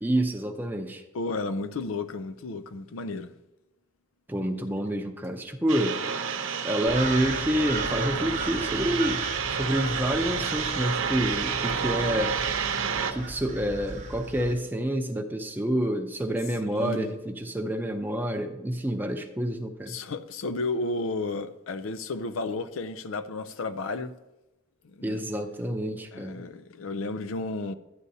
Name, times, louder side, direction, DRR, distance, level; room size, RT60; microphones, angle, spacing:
voice 1, 0.0-1.0 4.3-6.0 6.6-12.3 13.1-19.9 25.0-26.4, right 1 dB, 10° right, 0.6 m, -28 dB
voice 2, 1.1-3.3 16.7-17.2 19.9-24.1 24.8-25.2 26.1-27.7, left 3 dB, 80° left, 0.5 m, -32 dB
sound 1, 5.7-13.1, right 6 dB, 80° right, 0.8 m, -30 dB
sound 2, 6.9-14.5, right 3 dB, 40° right, 0.9 m, -37 dB
11.5 x 9.4 x 2.7 m
head